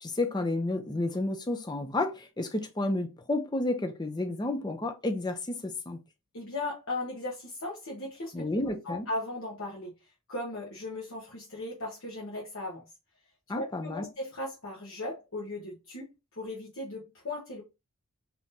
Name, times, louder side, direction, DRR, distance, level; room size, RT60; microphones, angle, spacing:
voice 1, 0.0-6.0 8.3-9.1 13.5-14.0, left 2 dB, 20° left, 0.5 m, -31 dB
voice 2, 6.3-8.4 8.8-9.9 10.3-12.8 13.5-17.6, left 2 dB, 60° left, 1.0 m, -37 dB
3.6 x 2.9 x 2.6 m
head